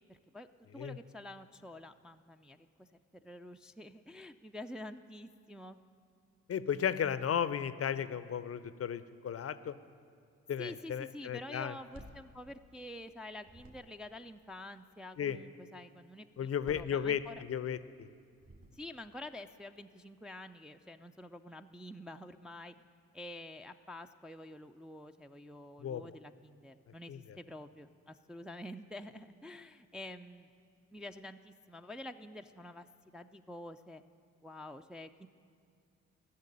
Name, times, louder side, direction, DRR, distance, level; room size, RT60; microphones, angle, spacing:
voice 1, 0.1-0.5 0.7-2.9 3.1-5.8 10.6-17.4 18.7-22.7 23.1-30.5 30.9-32.9 33.1-34.0 34.4-35.3, left 1 dB, ahead, 6 dB, 0.4 m, -48 dB
voice 2, 6.5-9.7 10.5-11.7 15.2-15.4 16.4-18.1 25.8-26.1 27.1-27.2, left 8 dB, 40° left, 14 dB, 0.6 m, -35 dB
sound 1, 11.9-13.1 13.4-14.2 16.4-17.6 18.3-19.1, right 1 dB, 35° right, 2.4 m, -56 dB
14.0 x 6.5 x 9.9 m, 2.3 s
hypercardioid pair, 40°, 35 cm